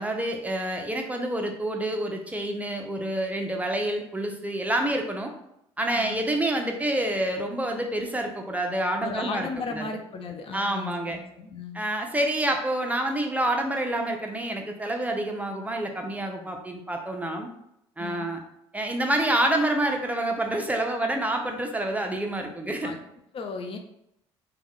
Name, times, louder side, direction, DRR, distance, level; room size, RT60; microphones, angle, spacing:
voice 1, 0.0-5.3 5.8-9.5 9.7-9.9 10.5-11.2 11.7-17.5 18.0-18.4 18.7-22.9, right 1 dB, 10° right, 3 dB, 0.7 m, -27 dB
voice 2, 5.9-6.3 9.0-11.8 18.0-18.3 22.8-23.0 23.3-23.8, left 4 dB, 40° left, 5 dB, 0.5 m, -36 dB
2.9 x 2.3 x 3.6 m, 0.78 s
hypercardioid pair, 65°, 14 cm